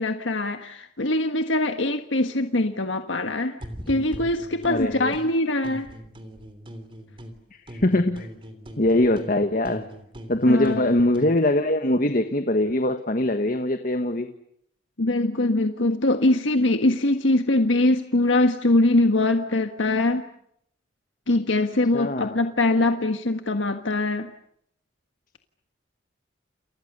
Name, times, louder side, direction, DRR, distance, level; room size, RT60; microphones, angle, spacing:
voice 1, 0.0-3.6 3.9-5.9 10.5-10.9 15.0-20.2 21.3-24.3, left 2 dB, 90° left, 6 dB, 1.6 m, -22 dB
sound 1, 3.6-5.3 5.6-7.4 7.7-11.4, equal, 30° right, 3.3 m, -41 dB
voice 2, 4.7-5.2 7.5-8.3 8.8-9.9 10.3-14.3 21.9-22.4, left 1 dB, 45° left, 7 dB, 1.5 m, -22 dB
29.5 x 29.0 x 6.8 m, 0.74 s
head